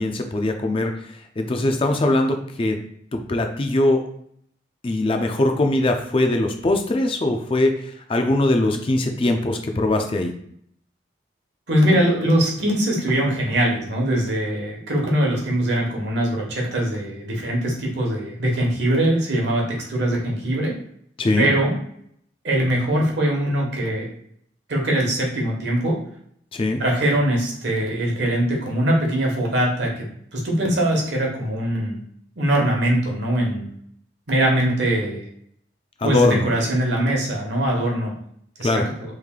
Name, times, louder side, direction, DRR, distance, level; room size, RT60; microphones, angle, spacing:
voice 1, 0.0-2.8 3.1-4.0 4.8-10.3 21.2-21.5 26.5-26.8 36.0-36.5 38.6-38.8, left 2 dB, 30° left, 4 dB, 0.4 m, -21 dB
voice 2, 11.7-20.8 21.4-21.8 22.4-24.1 24.7-26.0 26.8-32.0 32.4-33.7 34.3-35.2 36.0-38.1 38.6-38.8, right 1 dB, 65° right, -1 dB, 1.1 m, -22 dB
3.2 x 2.6 x 3.6 m, 0.67 s
head